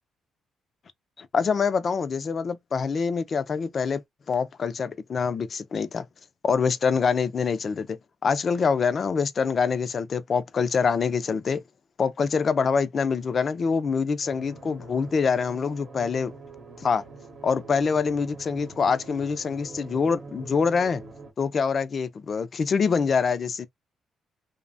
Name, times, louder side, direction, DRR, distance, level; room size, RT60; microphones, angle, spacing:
voice 1, 1.2-4.0 4.3-6.1 6.4-11.6 12.0-16.3 16.8-17.0 17.4-21.0 21.4-23.7, left 5 dB, 45° left, 0.4 m, -25 dB
sound 1, 14.2-21.3, right 3 dB, 50° right, 0.8 m, -44 dB
2.7 x 2.1 x 2.6 m
cardioid pair, 90°, 0 cm